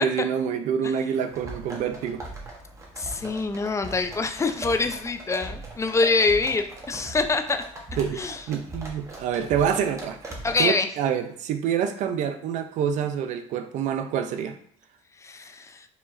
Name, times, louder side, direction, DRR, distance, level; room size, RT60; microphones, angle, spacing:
voice 1, 0.0-2.2 8.0-14.6, right 8 dB, 65° right, 8 dB, 0.5 m, -27 dB
sound 1, 1.3-10.6, right 1 dB, 20° right, 1.1 m, -39 dB
voice 2, 3.0-7.6 8.2-8.4 10.4-10.9 15.2-15.9, left 3 dB, 20° left, 8 dB, 0.4 m, -25 dB
4.9 x 2.8 x 2.5 m, 0.63 s
supercardioid pair, 95°, 13 cm